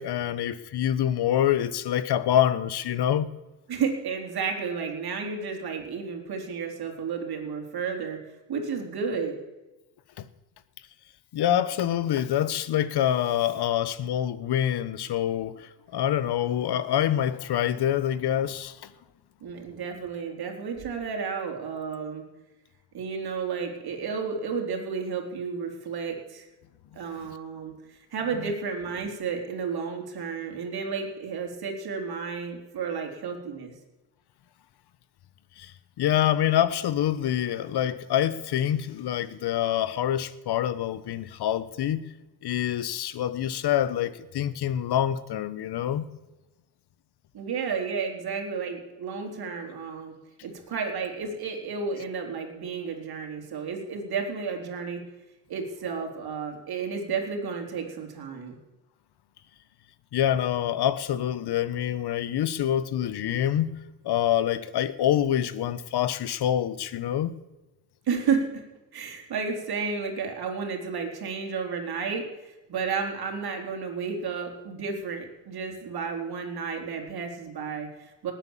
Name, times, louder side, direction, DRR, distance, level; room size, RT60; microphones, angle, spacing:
voice 1, 0.0-3.3 10.2-10.3 11.3-18.8 35.6-35.7 36.0-42.0 42.4-46.1 60.1-63.7 64.0-67.3, left 11 dB, 55° left, 1.2 m, -26 dB
voice 2, 3.7-8.2 8.5-9.4 19.4-22.2 22.9-26.5 26.9-33.7 47.3-50.2 50.4-55.1 55.5-58.6 68.1-68.7 68.9-78.3, right 5 dB, 50° right, 4.0 m, -32 dB
19.5 x 9.1 x 7.3 m
supercardioid pair, 85°, 47 cm